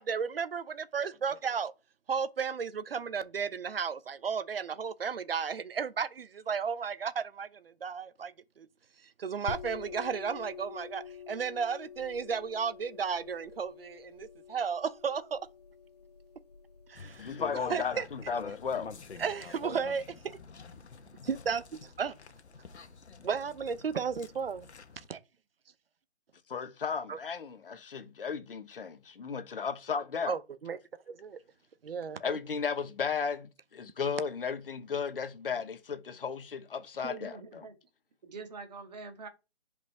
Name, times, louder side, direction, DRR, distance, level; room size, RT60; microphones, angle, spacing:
voice 1, 0.0-1.7 2.1-8.7 9.2-15.4 16.9-17.3 17.7-18.0 19.2-20.4 21.2-22.1 23.2-24.7 25.0-25.2 27.1-27.2 30.3-30.8 31.1-31.4 31.8-32.2, right 6 dB, 60° right, 0.9 m, -34 dB
sound 1, 9.5-18.8, left 7 dB, 35° left, 0.7 m, -47 dB
sound 2, 17.0-25.1, left 5 dB, 75° left, 1.3 m, -46 dB
voice 2, 17.2-19.2 26.5-30.3 32.2-37.6, left 6 dB, 55° left, 1.3 m, -35 dB
voice 3, 37.0-37.8 38.2-39.3, right 4 dB, 40° right, 1.8 m, -44 dB
10.5 x 5.1 x 3.5 m
hypercardioid pair, 160°, 33 cm